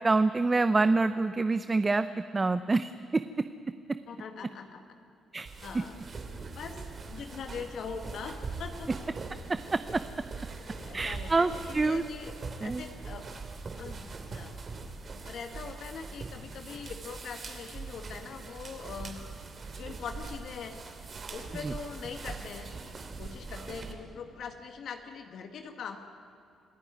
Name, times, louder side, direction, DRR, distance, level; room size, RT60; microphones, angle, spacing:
voice 1, 0.0-2.1 2.3-3.2 5.3-5.5 5.7-5.8 9.5-10.0 10.9-12.0 12.6-12.8 21.6-21.7, right 3 dB, 25° right, 11 dB, 0.7 m, -26 dB
voice 2, 4.1-4.8 5.6-6.0 6.5-8.9 10.7-12.3 12.6-13.2 13.8-14.6 15.2-19.2 19.8-20.8 21.3-22.7 23.2-26.0, left 6 dB, 65° left, 5 dB, 1.7 m, -42 dB
sound 1, 5.4-23.9, right 4 dB, 45° right, 2.8 m, -42 dB
26.5 x 14.5 x 9.8 m, 2.8 s
cardioid pair, 90°, 0 cm